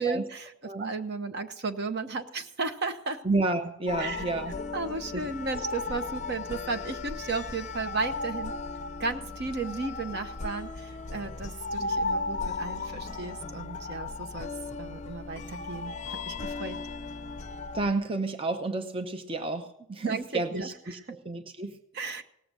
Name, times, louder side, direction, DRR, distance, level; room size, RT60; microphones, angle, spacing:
voice 1, 0.0-0.5 0.8-3.2 4.0-4.2 4.7-8.6 9.0-16.8 20.0-20.7 21.1-21.2 21.9-22.2, right 4 dB, 50° right, 9 dB, 0.9 m, -34 dB
voice 2, 3.2-4.5 5.1-5.2 17.7-21.8, right 2 dB, 25° right, 7 dB, 0.7 m, -30 dB
sound 1, 3.9-17.9, left 3 dB, 35° left, 0.5 m, -36 dB
17.5 x 7.6 x 6.7 m, 0.78 s
head